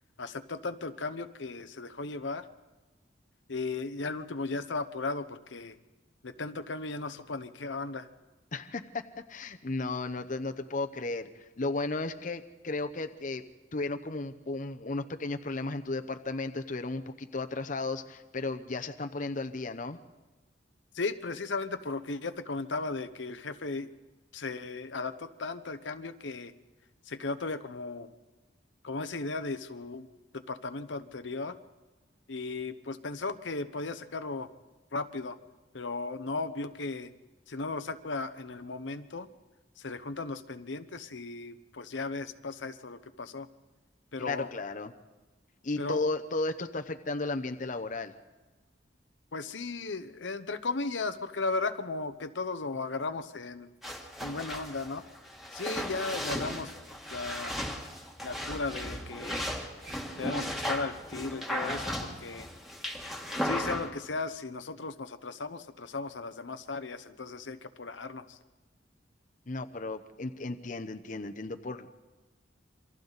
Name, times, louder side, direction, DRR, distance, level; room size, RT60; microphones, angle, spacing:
voice 1, 0.2-2.4 3.5-5.8 6.2-8.1 20.9-23.9 24.3-26.5 27.1-28.1 28.8-30.1 30.3-31.6 32.3-34.5 34.9-35.4 35.7-37.1 37.5-39.3 39.8-43.5 44.1-44.5 45.8-46.0 49.3-53.7 54.2-55.0 55.5-56.7 57.1-57.6 58.2-59.5 60.2-62.5 63.4-68.4, left 3 dB, 90° left, 10 dB, 1.0 m, -36 dB
voice 2, 8.5-9.0 9.3-13.4 13.7-20.0 44.2-44.9 45.6-48.1 69.5-71.9, left 3 dB, 45° left, 7 dB, 0.8 m, -34 dB
sound 1, 53.8-63.9, equal, ahead, 1.9 m, -36 dB
27.5 x 24.5 x 4.1 m, 1.1 s
head